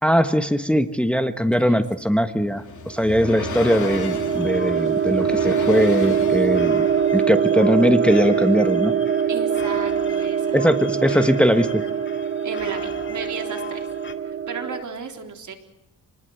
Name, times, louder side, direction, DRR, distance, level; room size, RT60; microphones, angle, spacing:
voice 1, 0.0-6.9 7.1-9.0 10.5-11.9, equal, 5° left, 8 dB, 1.3 m, -20 dB
sound 1, 2.0-7.1, left 6 dB, 65° left, 2.6 m, -35 dB
sound 2, 2.9-14.8, right 7 dB, 35° right, 1.0 m, -23 dB
sound 3, 3.4-14.1, left 5 dB, 35° left, 2.1 m, -39 dB
voice 2, 9.3-10.6 12.4-13.9 14.2-15.5, right 6 dB, 65° right, 4 dB, 3.8 m, -34 dB
28.5 x 20.5 x 8.1 m, 0.86 s
cardioid pair, 105°, 32 cm